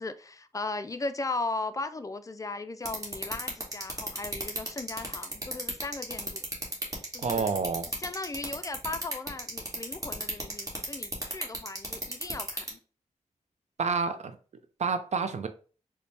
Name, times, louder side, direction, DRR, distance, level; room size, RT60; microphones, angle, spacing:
voice 1, 0.0-6.4 7.1-7.5 8.0-12.8, left 3 dB, 25° left, 0.4 m, -37 dB
sound 1, 2.8-12.7, right 1 dB, 25° right, 1.3 m, -32 dB
voice 2, 7.2-7.9 13.8-14.4 14.8-15.5, right 5 dB, 60° right, 0.5 m, -28 dB
4.1 x 2.2 x 3.2 m
cardioid pair, 65°, 13 cm